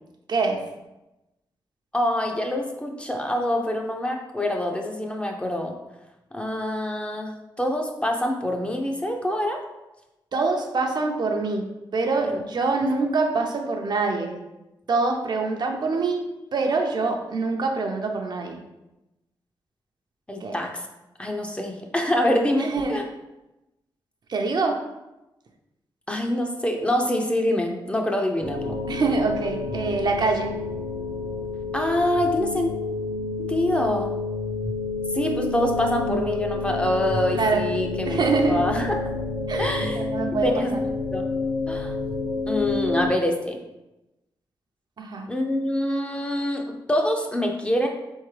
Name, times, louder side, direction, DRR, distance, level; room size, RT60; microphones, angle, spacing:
voice 1, 0.3-0.6 10.3-11.6 11.9-14.3 14.9-18.6 20.4-20.6 22.6-23.0 24.3-24.8 28.9-30.5 37.3-37.6 38.1-38.6 39.5-40.8 45.0-45.3, right 3 dB, 55° right, 3 dB, 0.6 m, -25 dB
voice 2, 1.9-5.7 6.3-7.3 7.6-9.6 12.3-12.4 20.3-20.8 21.2-23.0 26.1-28.8 31.7-32.7 33.4-34.1 35.1-38.2 38.5-39.1 39.6-40.1 40.4-40.7 41.1-41.3 41.7-41.9 42.5-43.6 45.3-46.6 46.9-47.9, left 1 dB, 15° left, 2 dB, 0.5 m, -25 dB
sound 1, 28.4-43.1, left 3 dB, 80° left, 1.4 m, -29 dB
3.7 x 3.5 x 3.2 m, 0.97 s
cardioid pair, 90°, 9 cm